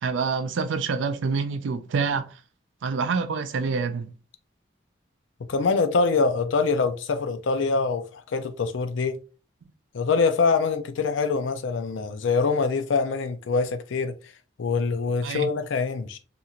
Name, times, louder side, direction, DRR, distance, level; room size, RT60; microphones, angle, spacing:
voice 1, 0.0-2.3 2.8-4.1 15.2-15.5, right 5 dB, 75° right, 0.4 m, -27 dB
voice 2, 5.5-9.2 9.9-14.1 14.6-16.2, left 4 dB, 80° left, 0.4 m, -24 dB
2.7 x 2.3 x 2.8 m
head